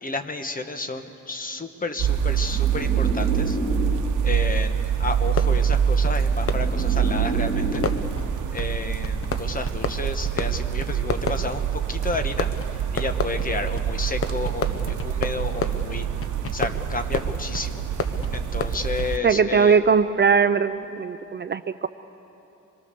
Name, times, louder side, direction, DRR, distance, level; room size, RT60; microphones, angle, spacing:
voice 1, 0.0-3.6 4.2-7.8 8.5-16.1 16.5-17.8 18.3-19.8, left 3 dB, 30° left, 8 dB, 1.2 m, -31 dB
sound 1, 2.0-4.3 5.3-8.3, right 2 dB, 5° right, 3.0 m, -31 dB
sound 2, 2.0-19.2, right 8 dB, 85° right, 0.9 m, -25 dB
Fireworks, 5.2-19.5, left 4 dB, 50° left, 1.0 m, -33 dB
voice 2, 19.2-21.9, right 6 dB, 35° right, 11 dB, 0.4 m, -20 dB
25.5 x 22.0 x 6.8 m, 3.0 s
wide cardioid pair, 135°, 30 cm